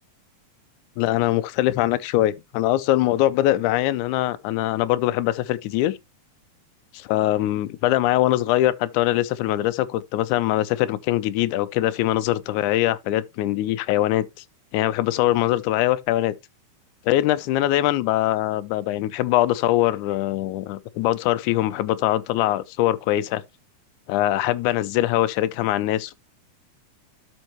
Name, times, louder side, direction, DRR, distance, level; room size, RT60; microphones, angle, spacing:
voice 1, 1.0-6.0 7.1-14.3 14.7-16.3 17.1-23.4 24.1-26.1, left 14 dB, 80° left, 2.0 m, -22 dB
12.5 x 5.4 x 3.0 m
omnidirectional pair, 3.7 m